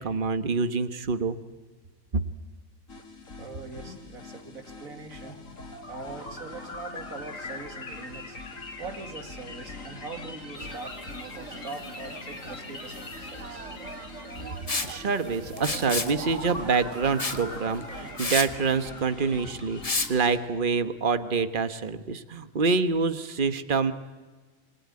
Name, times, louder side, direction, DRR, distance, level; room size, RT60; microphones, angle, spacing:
voice 1, 0.0-1.4 14.4-14.6 14.8-23.9, right 4 dB, 40° right, 11 dB, 1.4 m, -26 dB
sound 1, 2.9-20.3, left 3 dB, 75° left, 3.1 m, -41 dB
voice 2, 3.4-5.4 5.9-8.4 8.8-11.0 11.3-13.7, right 4 dB, 85° right, 6 dB, 2.7 m, -42 dB
sound 2, 10.5-18.4, right 6 dB, 65° right, 1.4 m, -45 dB
Liquid, 14.7-14.9 15.6-16.1 17.2-17.4 17.8-17.9 18.2-18.5 19.8-20.1, left 3 dB, 25° left, 1.4 m, -28 dB
27.0 x 22.0 x 9.7 m, 1.3 s
omnidirectional pair, 1.4 m